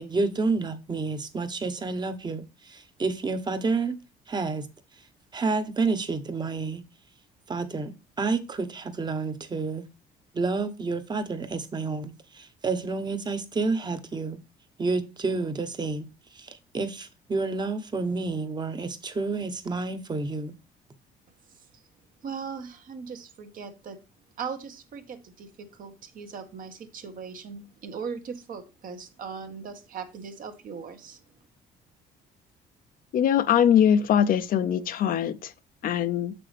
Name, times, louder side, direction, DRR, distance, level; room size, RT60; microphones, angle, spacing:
voice 1, 0.0-4.0 4.3-4.7 5.3-6.8 7.5-7.9 8.2-9.9 10.3-14.4 14.8-16.1 16.3-20.5, right 3 dB, 25° right, 1.1 m, -29 dB
voice 2, 22.2-24.0 24.4-31.2, right 6 dB, 55° right, 1.4 m, -39 dB
voice 3, 33.1-35.5 35.8-36.3, left 9 dB, 55° left, 0.7 m, -22 dB
7.1 x 6.0 x 3.3 m
cardioid pair, 110°, 17 cm